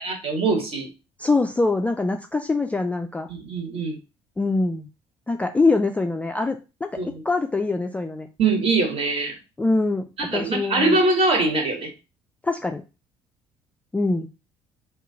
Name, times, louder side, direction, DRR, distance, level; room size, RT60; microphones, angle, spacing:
voice 1, 0.0-0.9 3.3-4.0 7.0-7.1 8.4-9.3 10.2-11.9, right 3 dB, 40° right, 2 dB, 1.2 m, -22 dB
voice 2, 1.2-3.3 4.4-4.9 5.3-8.3 9.6-11.0 12.4-12.8 13.9-14.3, left 3 dB, 10° left, 4 dB, 0.3 m, -24 dB
2.8 x 2.3 x 3.7 m, 0.29 s
figure-of-eight pair, 50°, 15 cm